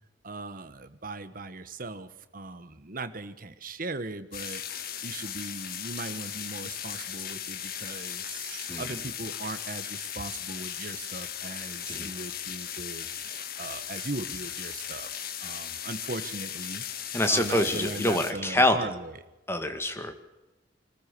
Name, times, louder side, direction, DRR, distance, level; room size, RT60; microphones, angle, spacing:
voice 1, 0.2-4.6 5.0-16.8 17.3-19.1, right 2 dB, 50° right, 11 dB, 1.4 m, -39 dB
sound 1, 4.3-18.3, left 9 dB, 55° left, 1.6 m, -37 dB
voice 2, 17.1-18.8 19.5-20.1, left 1 dB, 15° left, 7 dB, 2.1 m, -26 dB
25.0 x 15.0 x 6.9 m, 1.0 s
head